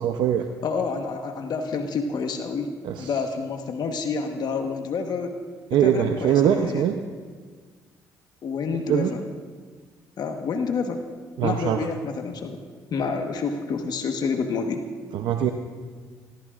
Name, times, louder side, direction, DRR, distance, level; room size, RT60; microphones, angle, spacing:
voice 1, 0.0-0.4 2.8-3.1 5.7-6.9 8.9-9.1 11.4-11.8 15.1-15.5, right 9 dB, 75° right, 5 dB, 0.8 m, -22 dB
voice 2, 0.6-2.7 3.0-5.3 5.8-6.9 8.4-9.2 10.2-11.0 11.4-12.6 12.9-14.8, left 5 dB, 60° left, 5 dB, 1.3 m, -28 dB
27.0 x 15.0 x 2.5 m, 1.5 s
supercardioid pair, 60°, 8 cm